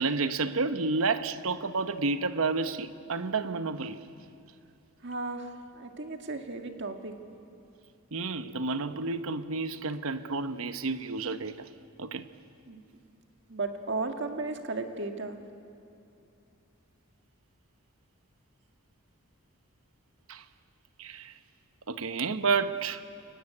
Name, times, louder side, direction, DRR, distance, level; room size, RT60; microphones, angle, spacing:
voice 1, 0.0-4.0 8.1-11.7 12.0-12.3 20.3-20.4 21.0-21.3 21.9-23.0, right 4 dB, 75° right, 0.9 m, -30 dB
voice 2, 5.0-7.1 12.7-12.8 13.5-15.4, right 3 dB, 55° right, 1.8 m, -35 dB
29.5 x 15.5 x 9.9 m
head